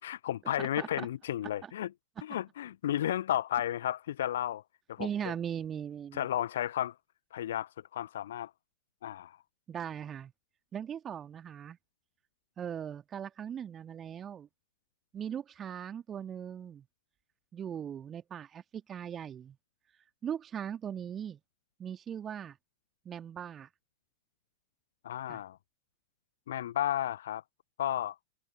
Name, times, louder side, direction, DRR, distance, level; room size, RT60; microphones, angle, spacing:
voice 1, 0.0-1.9 2.2-4.6 4.9-5.3 6.1-6.9 7.3-8.5 9.0-9.4 25.0-25.6 26.5-27.4 27.8-28.2, left 11 dB, 60° left, 0.6 m, -33 dB
voice 2, 0.6-1.1 1.6-1.7 5.0-6.3 9.7-10.3 10.7-11.8 12.6-14.5 15.1-16.9 17.5-19.6 20.2-21.4 21.8-22.6 23.1-23.7 25.3-25.4, right 8 dB, 25° right, 2.3 m, -39 dB
open air
figure-of-eight pair, 90°, 0 cm